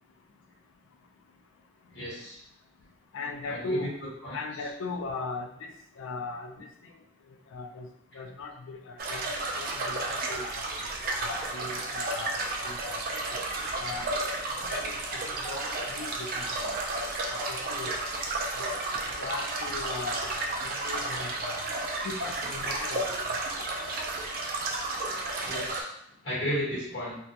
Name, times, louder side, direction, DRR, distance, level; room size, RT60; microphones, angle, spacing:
voice 1, 1.9-2.4 3.5-3.9 4.2-4.4 25.4-25.9 26.2-27.2, equal, 60° left, -6 dB, 1.1 m, -33 dB
voice 2, 3.1-3.9 4.3-6.5 7.5-7.9 8.1-10.7 11.2-13.0 13.8-14.2 14.7-16.5 17.3-17.9 18.6-18.7 19.2-21.6 22.0-23.0 23.3-23.4, left 3 dB, 85° left, 5 dB, 0.4 m, -38 dB
sound 1, 9.0-25.8, right 2 dB, 50° right, 0.3 m, -32 dB
2.2 x 2.1 x 2.6 m, 0.77 s
head